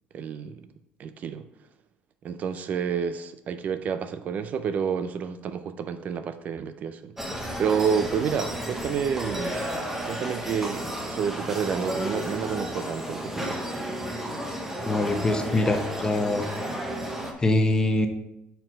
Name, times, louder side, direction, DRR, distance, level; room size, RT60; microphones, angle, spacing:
voice 1, 0.1-0.7 1.0-1.4 2.2-9.7 10.1-13.6, right 7 dB, 45° right, 11 dB, 0.4 m, -29 dB
sound 1, 7.2-17.3, equal, 10° right, 0.9 m, -32 dB
voice 2, 14.8-16.5 17.4-18.1, left 2 dB, 20° left, 6 dB, 0.7 m, -23 dB
5.8 x 4.6 x 5.0 m, 0.85 s
cardioid pair, 135°, 4 cm